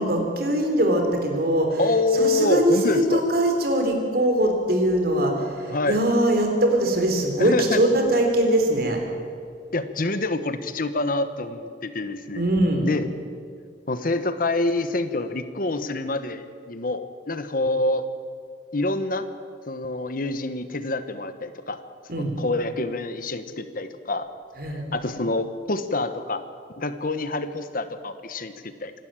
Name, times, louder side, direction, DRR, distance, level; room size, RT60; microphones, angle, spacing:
voice 1, 0.0-1.8 2.2-9.0 12.3-12.9 22.1-22.3 24.6-24.8, right 1 dB, 60° right, 3 dB, 3.7 m, -22 dB
voice 2, 1.8-3.2 5.7-6.0 7.4-7.8 9.7-12.4 12.8-13.1 13.9-18.1 18.7-19.3 19.7-21.8 22.2-24.3 24.9-26.4 26.8-28.9, left 2 dB, 50° left, 11 dB, 1.2 m, -26 dB
26.0 x 12.5 x 9.0 m, 2.2 s
head